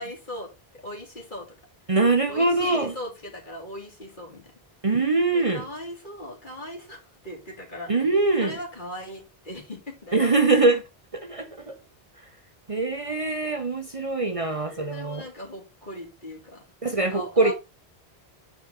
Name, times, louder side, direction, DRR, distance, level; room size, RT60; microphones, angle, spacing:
voice 1, 0.0-1.5 2.3-4.5 5.3-8.1 8.4-10.6 14.4-16.6 17.1-17.5, left 1 dB, 50° left, 2.8 m, -39 dB
voice 2, 1.9-2.9 4.8-5.6 7.9-8.5 10.1-10.8 11.3-11.7 12.7-15.2 16.8-17.5, right 3 dB, 35° right, 0.9 m, -23 dB
8.5 x 4.9 x 3.8 m
omnidirectional pair, 1.1 m